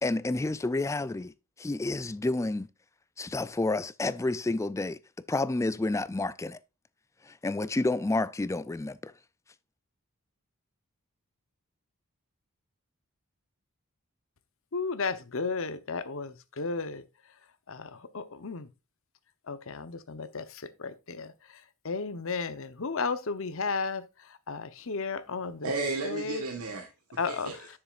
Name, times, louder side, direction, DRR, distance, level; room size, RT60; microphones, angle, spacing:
voice 1, 0.0-1.3 1.6-2.7 3.2-5.0 5.3-6.6 7.2-9.1, left 2 dB, 15° left, 0.3 m, -30 dB
voice 2, 14.7-17.0 17.7-18.7 19.5-21.3 21.8-24.0 24.5-25.7 26.0-26.4 27.2-27.5, left 4 dB, 65° left, 0.9 m, -33 dB
voice 3, 25.6-27.7, right 3 dB, 85° right, 1.5 m, -34 dB
10.0 x 6.9 x 2.5 m
head